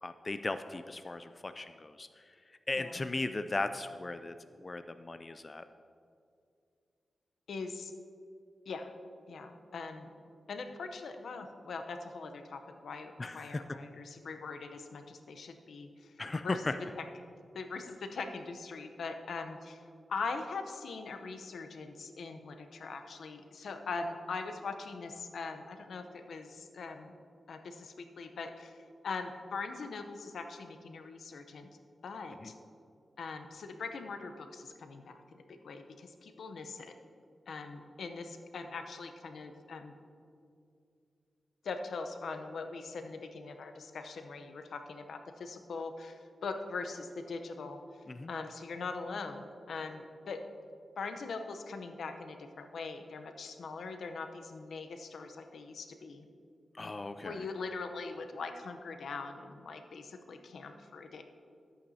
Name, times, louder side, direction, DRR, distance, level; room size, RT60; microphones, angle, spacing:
voice 1, 0.0-5.6 13.2-13.6 16.2-16.8 32.4-32.5 48.1-48.3 56.7-57.5, left 2 dB, 35° left, 9 dB, 0.3 m, -37 dB
voice 2, 2.8-3.1 7.5-7.9 8.7-8.9 9.3-10.1 10.5-16.1 16.4-16.6 17.0-17.1 17.5-19.8 20.1-27.1 27.5-31.7 32.0-32.5 33.2-36.9 37.5-39.9 41.6-47.8 48.3-50.4 51.0-56.2 57.2-61.2, left 4 dB, 85° left, 7 dB, 0.7 m, -41 dB
13.5 x 8.6 x 2.7 m, 2.4 s
cardioid pair, 80°, 0 cm